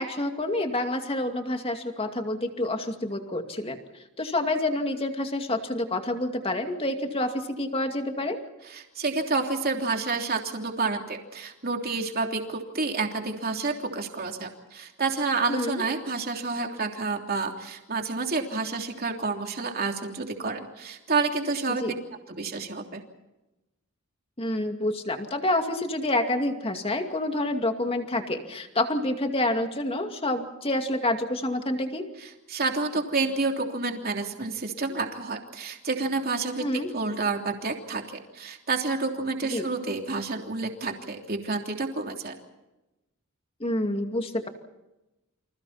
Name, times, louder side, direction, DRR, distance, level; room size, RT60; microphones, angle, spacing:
voice 1, 0.0-3.8 4.2-8.4 15.5-15.8 21.8-21.9 24.4-32.1 36.6-36.9 39.5-39.7 43.6-44.5, left 1 dB, 25° left, 5 dB, 2.4 m, -28 dB
voice 2, 8.6-21.9 22.4-23.0 32.2-42.3, right 3 dB, 45° right, 3 dB, 3.2 m, -29 dB
29.5 x 26.5 x 4.3 m, 0.99 s
head